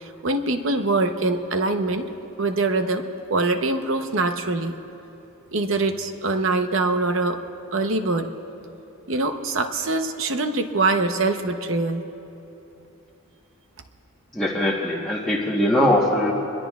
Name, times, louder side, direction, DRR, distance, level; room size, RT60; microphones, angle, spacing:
voice 1, 0.0-2.1 2.4-4.7 5.5-7.4 7.7-8.3 9.1-12.0, right 2 dB, 60° right, 6 dB, 0.9 m, -23 dB
voice 2, 14.3-16.3, left 1 dB, ahead, -8 dB, 1.2 m, -21 dB
25.0 x 21.5 x 2.4 m, 2.9 s
head